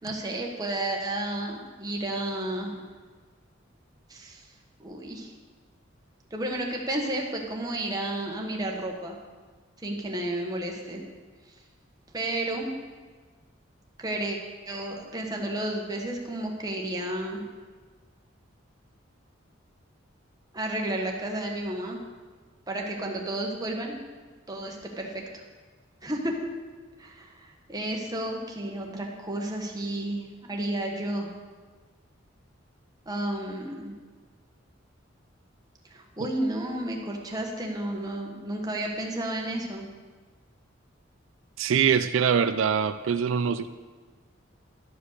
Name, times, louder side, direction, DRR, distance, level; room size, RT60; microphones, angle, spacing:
voice 1, 0.0-2.7 4.1-4.4 4.8-5.3 6.3-9.2 9.8-11.0 12.1-12.7 14.0-14.4 14.7-17.4 20.5-22.0 22.7-24.0 24.5-25.1 26.0-26.3 27.0-31.3 33.1-34.0 35.9-39.9, right 1 dB, 20° right, 0 dB, 1.3 m, -32 dB
voice 2, 41.6-43.8, right 7 dB, 85° right, 11 dB, 0.4 m, -23 dB
12.0 x 5.1 x 6.6 m, 1.4 s
head